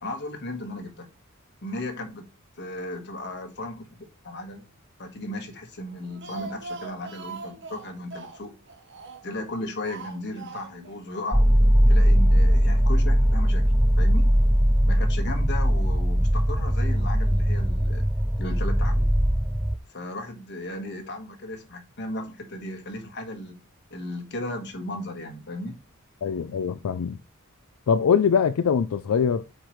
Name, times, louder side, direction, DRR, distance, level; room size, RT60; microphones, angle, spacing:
voice 1, 0.0-1.1 1.6-2.2 2.6-4.6 5.0-8.5 9.2-11.5 11.9-13.7 14.0-14.3 14.8-18.1 18.4-19.1 19.9-23.6 23.9-25.8, left 1 dB, 55° left, 1.6 m, -35 dB
Speech, 5.9-9.4 9.8-11.0 11.2-11.3 11.6-11.7, right 3 dB, 55° right, 1.0 m, -41 dB
sound 1, 11.3-19.8, equal, 5° right, 0.3 m, -20 dB
voice 2, 26.2-27.2 27.9-29.4, left 7 dB, 85° left, 0.4 m, -22 dB
7.8 x 4.7 x 3.2 m
head